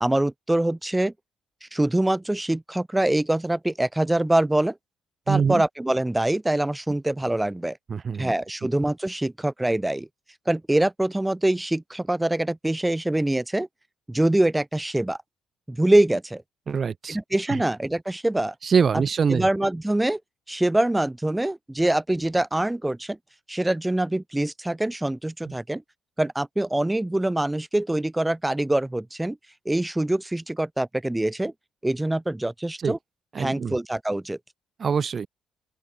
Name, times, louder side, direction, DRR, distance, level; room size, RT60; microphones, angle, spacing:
voice 1, 0.0-1.1 1.7-4.7 5.3-7.8 8.2-10.1 10.5-13.7 14.1-15.2 15.7-16.4 17.1-18.5 18.9-19.0 19.3-20.2 20.5-23.2 23.5-25.8 26.2-29.4 29.7-31.5 31.8-33.0 33.4-34.4, right 1 dB, 10° right, 0.9 m, -24 dB
voice 2, 5.3-5.6 7.9-8.3 16.7-17.2 17.5-17.6 18.6-19.5 25.5-25.6 32.8-33.0 33.3-33.8 34.8-35.3, right 6 dB, 40° right, 0.5 m, -24 dB
open air
cardioid pair, 110°, 0 cm